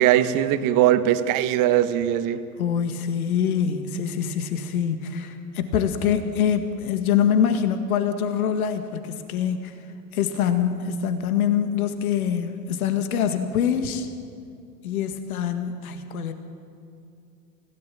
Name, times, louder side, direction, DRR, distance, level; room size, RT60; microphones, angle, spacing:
voice 1, 0.0-2.4, right 12 dB, 45° right, 11 dB, 1.5 m, -20 dB
voice 2, 2.6-9.7 10.1-14.1 14.8-16.3, left 8 dB, 65° left, 8 dB, 2.0 m, -24 dB
29.0 x 17.0 x 7.7 m, 2.5 s
figure-of-eight pair, 85°, 46 cm